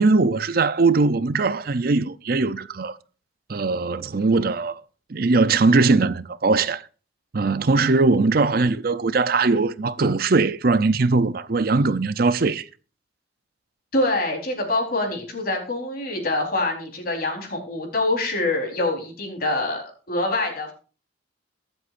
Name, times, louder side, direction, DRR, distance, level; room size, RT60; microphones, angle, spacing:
voice 1, 0.0-3.0 3.5-4.8 5.1-6.8 7.3-12.6, right 3 dB, 50° right, 0.6 m, -20 dB
voice 2, 13.9-20.7, left 2 dB, 50° left, 4.1 m, -25 dB
22.5 x 7.9 x 2.6 m
head